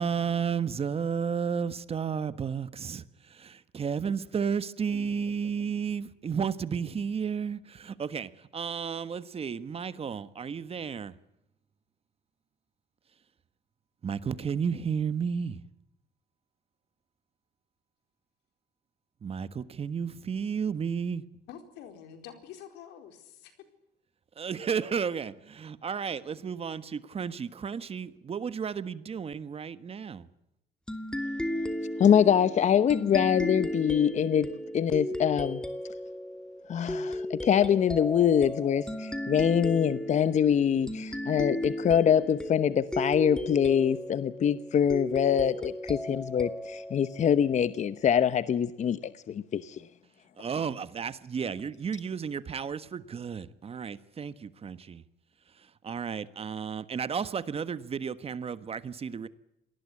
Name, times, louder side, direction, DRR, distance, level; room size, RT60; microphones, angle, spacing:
voice 1, 0.0-11.1 14.0-15.6 19.2-21.2 24.4-30.3 50.4-55.0 55.6-59.3, right 6 dB, 35° right, 1.4 m, -33 dB
voice 2, 21.5-23.5, left 9 dB, 90° left, 4.4 m, -47 dB
sound 1, 30.9-48.0, left 1 dB, 5° left, 2.5 m, -35 dB
voice 3, 32.0-35.6 36.7-49.8, left 8 dB, 45° left, 1.0 m, -24 dB
27.0 x 19.5 x 8.5 m
cardioid pair, 110°, 17 cm